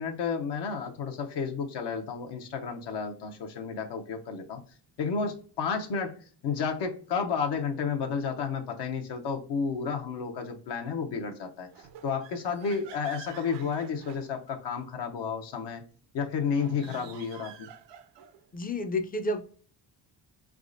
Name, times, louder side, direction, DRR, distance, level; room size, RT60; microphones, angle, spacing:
voice 1, 0.0-4.6 5.0-6.2 6.4-15.8 16.1-17.7, left 6 dB, 70° left, 3 dB, 0.7 m, -32 dB
sound 1, 11.7-14.8 16.4-18.4, right 9 dB, 75° right, 0.6 m, -48 dB
voice 2, 18.5-19.4, left 1 dB, 20° left, 8 dB, 0.4 m, -30 dB
4.0 x 3.5 x 2.5 m, 0.43 s
cardioid pair, 110°, 43 cm